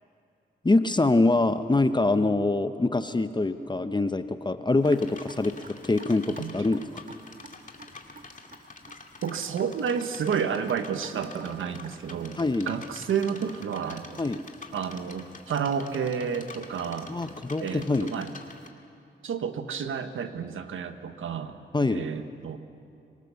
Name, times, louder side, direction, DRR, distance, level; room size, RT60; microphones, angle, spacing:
voice 1, 0.6-6.8 12.4-12.7 14.2-14.4 17.1-18.1 21.7-22.1, left 2 dB, 20° left, 10 dB, 0.9 m, -24 dB
sound 1, 4.8-18.7, left 3 dB, 40° left, 2.2 m, -47 dB
Raindrop / Drip, 4.9-12.2, right 3 dB, 45° right, 1.6 m, -49 dB
voice 2, 9.2-12.4 12.7-14.2 14.7-17.1 17.6-18.3 19.2-21.6 21.9-22.6, right 7 dB, 90° right, 9 dB, 1.2 m, -30 dB
25.0 x 18.5 x 6.9 m, 2.6 s
cardioid pair, 60°, 20 cm